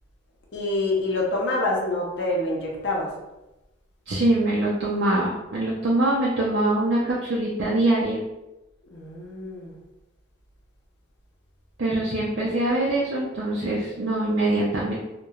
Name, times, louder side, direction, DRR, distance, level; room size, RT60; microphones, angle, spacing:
voice 1, 0.5-3.1 8.9-9.7, left 2 dB, 60° left, -3 dB, 0.6 m, -26 dB
voice 2, 4.1-8.2 11.8-15.0, right 1 dB, 65° right, -5 dB, 0.4 m, -23 dB
2.9 x 2.1 x 2.3 m, 0.99 s
head